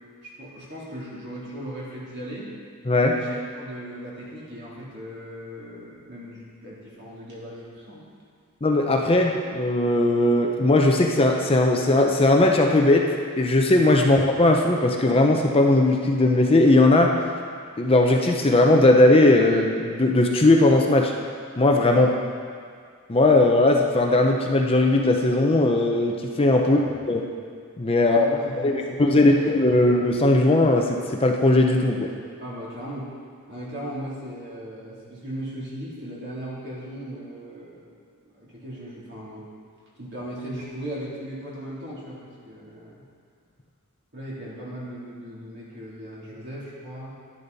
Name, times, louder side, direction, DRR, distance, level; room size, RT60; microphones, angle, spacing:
voice 1, 0.2-2.5 3.1-8.0 21.9-22.1 26.6-26.9 28.0-30.0 32.4-33.1 33.5-37.9 38.3-39.4 40.0-43.0 44.1-47.1, right 1 dB, 50° right, -7 dB, 3.2 m, -37 dB
voice 2, 2.9-3.2 8.6-17.2 17.8-21.1 21.6-22.1 23.1-26.8 27.1-27.2 27.8-28.3 28.6-32.1, left 2 dB, 25° left, 2 dB, 0.6 m, -18 dB
11.5 x 10.5 x 4.1 m, 2.1 s
head